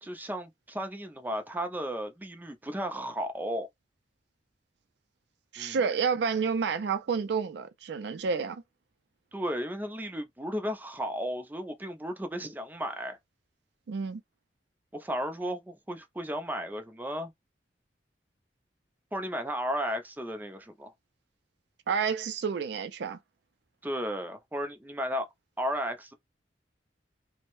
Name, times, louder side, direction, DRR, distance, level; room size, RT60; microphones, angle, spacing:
voice 1, 0.0-3.7 5.6-5.8 9.3-13.2 14.9-17.3 19.1-20.9 23.8-25.3 25.6-26.1, equal, 10° right, 0.5 m, -34 dB
voice 2, 5.5-8.6 13.9-14.2 21.9-23.2, right 6 dB, 70° right, 0.4 m, -29 dB
2.7 x 2.1 x 3.0 m
head